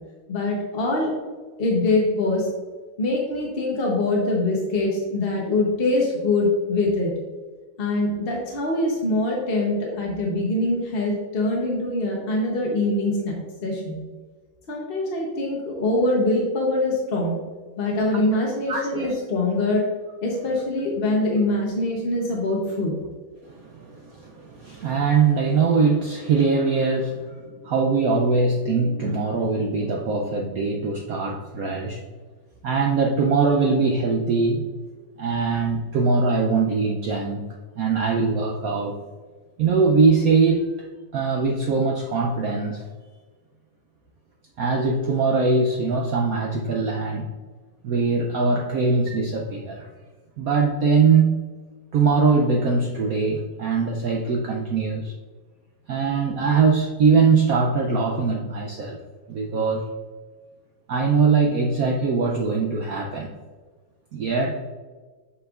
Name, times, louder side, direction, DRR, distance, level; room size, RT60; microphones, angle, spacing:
voice 1, 0.3-1.1 1.6-2.5 3.0-7.1 7.8-14.0 14.7-17.4 17.8-19.9 20.2-22.9, left 2 dB, 45° left, -2 dB, 0.8 m, -23 dB
voice 2, 18.7-19.0 23.4-32.0 32.6-34.7 35.2-37.4 37.8-39.0 39.6-40.7 41.1-42.9 44.6-47.3 47.8-49.9 50.4-51.3 51.9-55.1 55.9-59.0 59.3-59.9 60.9-63.3 64.1-64.6, right 4 dB, 80° right, 1 dB, 0.8 m, -22 dB
7.9 x 5.5 x 2.4 m, 1.4 s
omnidirectional pair, 2.2 m